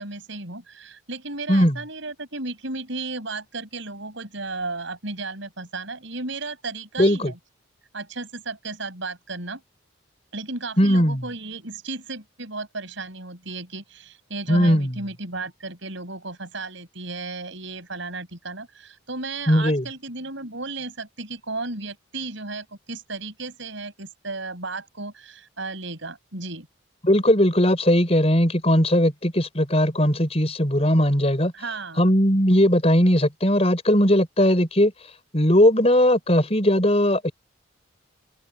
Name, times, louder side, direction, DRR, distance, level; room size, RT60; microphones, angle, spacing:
voice 1, 0.0-7.4 7.9-9.6 10.3-26.7 31.5-32.0, right 3 dB, 65° right, 5.6 m, -34 dB
voice 2, 7.0-7.3 10.8-11.2 14.5-15.0 19.5-19.9 27.0-31.5 32.0-34.9 35.3-37.3, equal, 30° left, 5.2 m, -19 dB
head